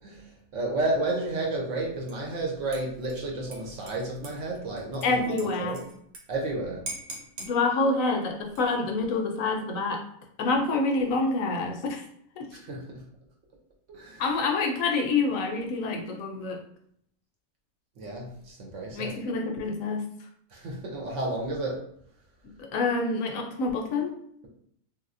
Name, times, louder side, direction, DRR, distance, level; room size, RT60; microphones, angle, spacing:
voice 1, 0.0-5.8 6.3-6.8 12.5-12.8 13.9-14.3 18.0-19.1 20.5-21.8, right 2 dB, 65° right, 0 dB, 1.0 m, -32 dB
Dishes pots and pans / Liquid, 2.1-2.4 2.7-6.2 6.5-6.6 6.9-7.5 8.4-8.9, right 2 dB, 90° right, 1.2 m, -43 dB
voice 2, 5.0-5.8 7.4-10.0 10.4-12.0 12.4-12.5 14.2-16.6 18.9-20.0 22.7-24.1, left 3 dB, 75° left, 2 dB, 1.0 m, -27 dB
3.0 x 2.7 x 2.5 m, 0.68 s
omnidirectional pair, 1.5 m